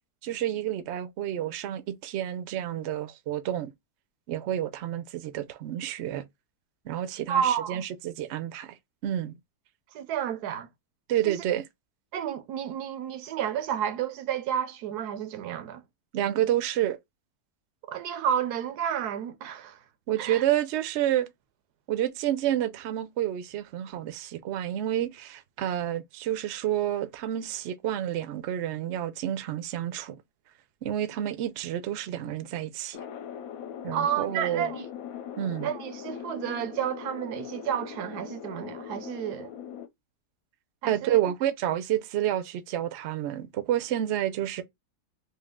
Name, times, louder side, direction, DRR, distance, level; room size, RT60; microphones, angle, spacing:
voice 1, 0.2-3.7 4.3-6.2 6.9-8.7 9.0-9.3 11.1-11.6 16.1-17.0 20.1-21.3 21.9-30.2 30.8-33.0 33.8-34.7 35.4-35.7 40.9-44.6, right 12 dB, 60° right, 0.7 m, -29 dB
voice 2, 7.3-7.8 9.9-10.7 11.2-11.4 12.1-15.8 17.9-19.8 20.2-20.4 33.9-34.9 35.6-39.5 40.8-41.2, right 9 dB, 80° right, 1.2 m, -31 dB
sound 1, 32.9-39.9, left 9 dB, 70° left, 1.0 m, -40 dB
3.3 x 2.8 x 3.5 m
omnidirectional pair, 1.7 m